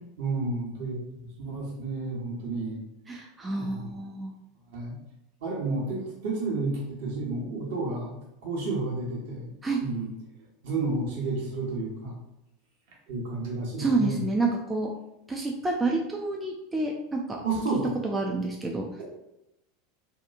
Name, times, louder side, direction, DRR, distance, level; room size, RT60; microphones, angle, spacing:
voice 1, 0.2-2.8 3.6-3.9 4.7-4.9 5.4-8.1 8.4-9.5 9.8-10.1 10.6-12.2 13.1-14.2 17.4-17.9, right 3 dB, 60° right, -3 dB, 0.9 m, -31 dB
voice 2, 3.1-4.3 9.6-9.8 13.8-14.9 15.3-17.4 18.0-18.9, right 3 dB, 15° right, 0 dB, 0.3 m, -28 dB
2.8 x 2.4 x 2.3 m, 0.89 s
figure-of-eight pair, 80°, 0 cm